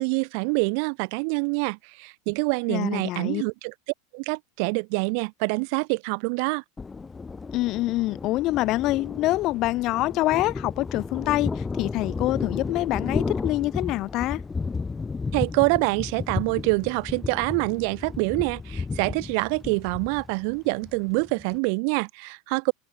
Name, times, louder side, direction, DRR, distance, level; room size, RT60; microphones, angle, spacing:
voice 1, 0.0-3.7 4.1-6.6 15.3-22.7, right 39 dB, 50° right, 1.7 m, -26 dB
voice 2, 2.7-3.4 7.5-14.4, left 18 dB, 45° left, 1.3 m, -26 dB
Thunder, 6.8-21.6, left 4 dB, 15° left, 1.3 m, -33 dB
figure-of-eight pair, 80°, 0 cm